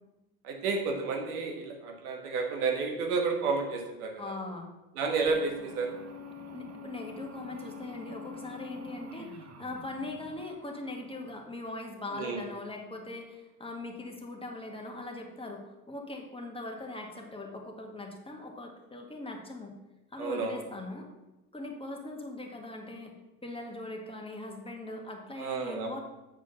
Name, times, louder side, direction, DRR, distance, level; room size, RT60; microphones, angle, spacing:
voice 1, 0.4-4.3 5.0-6.0 12.1-12.4 20.2-20.5 25.4-25.9, right 4 dB, 80° right, 3 dB, 1.6 m, -31 dB
voice 2, 4.2-4.7 6.5-19.8 20.1-21.1 21.5-23.2 23.4-26.0, left 2 dB, 10° left, 1 dB, 1.9 m, -41 dB
sound 1, 5.3-11.6, left 2 dB, 35° right, 1.2 m, -46 dB
9.4 x 4.8 x 5.8 m, 1.0 s
hypercardioid pair, 70°, 44 cm